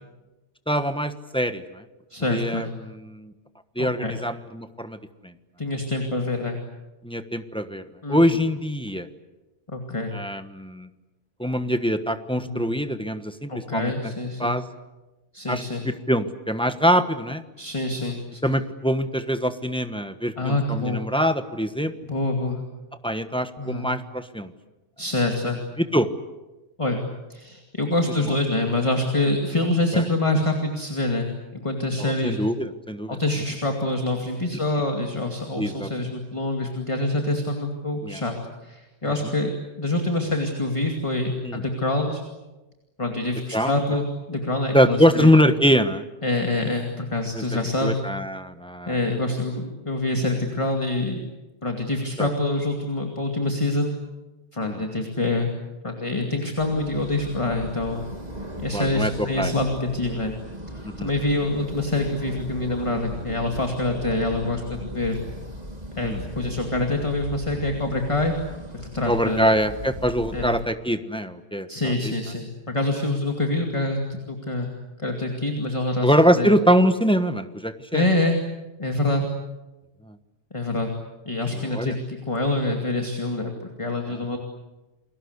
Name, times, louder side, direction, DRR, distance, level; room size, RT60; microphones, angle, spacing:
voice 1, 0.7-1.8 2.3-3.3 3.7-5.0 5.2-5.3 7.0-7.8 8.1-9.1 10.1-10.9 11.4-14.1 14.4-14.6 15.5-17.4 18.4-21.9 23.0-24.5 25.8-26.1 29.9-30.0 32.0-33.2 35.6-35.9 38.0-38.2 39.0-39.1 41.4-41.6 43.5-43.8 44.7-46.0 47.3-47.4 47.8-49.0 52.2-52.3 54.6-54.9 58.7-59.5 60.8-61.1 66.0-66.2 69.0-72.1 76.0-78.0 80.1-80.2 81.5-81.9 84.1-84.4, equal, 5° left, 9 dB, 1.2 m, -23 dB
voice 2, 2.1-2.7 3.8-4.2 5.6-6.6 8.0-8.2 9.7-10.1 12.4-12.7 13.5-14.5 15.3-15.8 17.6-18.4 20.4-21.0 22.0-22.6 23.6-23.9 25.0-25.6 26.8-27.0 27.3-31.3 31.5-32.4 33.1-38.3 38.6-39.5 39.8-42.2 43.0-45.3 46.2-48.0 48.9-51.2 51.6-53.9 54.5-55.5 55.8-58.0 58.6-60.3 61.0-65.2 66.0-68.3 68.7-69.5 70.3-70.5 71.7-74.0 74.3-74.7 75.0-76.5 77.9-78.4 78.8-79.3 80.5-80.9 81.3-84.4, left 2 dB, 25° left, 3 dB, 2.5 m, -26 dB
sound 1, 56.6-70.6, right 1 dB, 35° right, 3.0 m, -37 dB
29.5 x 22.0 x 8.2 m, 1.1 s
omnidirectional pair, 1.3 m